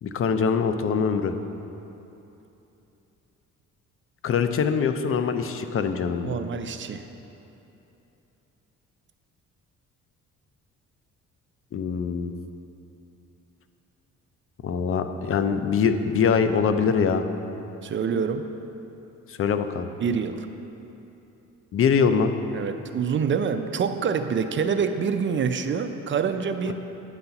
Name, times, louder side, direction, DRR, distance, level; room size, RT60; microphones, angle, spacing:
voice 1, 0.0-1.3 4.2-6.3 11.7-12.3 14.6-17.2 19.3-19.9 21.7-22.3 26.7-26.8, left 6 dB, 45° left, 9 dB, 0.5 m, -23 dB
voice 2, 6.3-7.0 17.8-18.5 20.0-20.5 22.5-26.7, right 6 dB, 40° right, 8 dB, 0.5 m, -26 dB
9.7 x 4.1 x 5.7 m, 3.0 s
cardioid pair, 90°, 30 cm